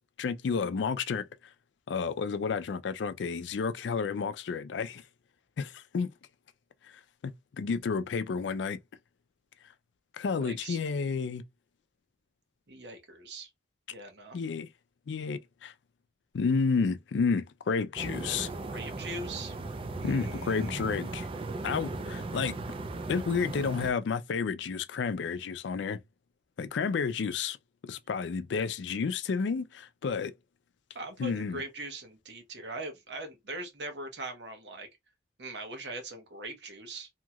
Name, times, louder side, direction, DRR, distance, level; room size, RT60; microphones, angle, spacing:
voice 1, 0.2-1.3 1.9-5.0 5.6-6.1 6.8-6.9 7.2-8.8 10.2-11.4 14.3-14.7 15.1-15.7 16.3-18.5 20.0-21.3 21.6-22.6 23.1-26.0 26.6-27.6 27.8-30.3 31.2-31.6, left 5 dB, 85° left, 0.4 m, -31 dB
voice 2, 10.4-10.8 12.7-13.5 13.9-14.4 18.6-19.5 20.0-20.9 30.9-34.9 35.4-37.1, right 2 dB, 75° right, 1.0 m, -41 dB
sound 1, 18.0-23.9, right 2 dB, 30° right, 0.3 m, -37 dB
2.8 x 2.8 x 2.3 m
head